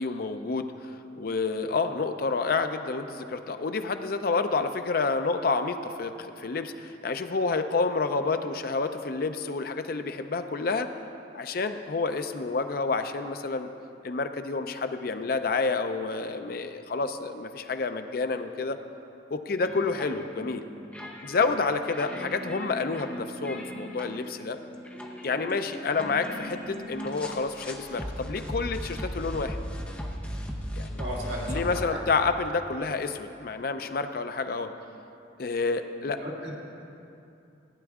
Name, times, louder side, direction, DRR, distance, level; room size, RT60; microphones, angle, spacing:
voice 1, 0.0-10.9 11.3-13.7 14.0-18.8 19.3-20.7 21.2-24.6 25.2-29.6 30.8-31.0 31.5-34.7 35.4-36.2, left 4 dB, 55° left, 8 dB, 0.5 m, -29 dB
sound 1, 19.6-31.8, equal, 5° left, 0.8 m, -38 dB
voice 2, 31.0-32.0 36.0-36.6, equal, 70° right, -4 dB, 2.2 m, -36 dB
15.0 x 9.6 x 3.6 m, 2.8 s
head